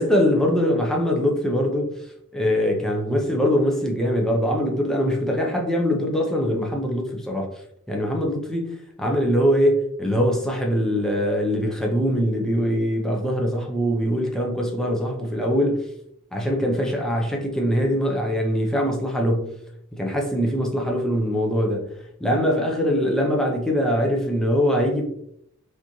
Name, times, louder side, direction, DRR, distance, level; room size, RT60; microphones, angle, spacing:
voice 1, 0.0-2.0 2.3-7.5 7.9-15.9 16.3-19.5 19.9-21.9 22.2-25.0, equal, 5° left, 0.5 m, -22 dB
3.5 x 3.0 x 2.6 m
head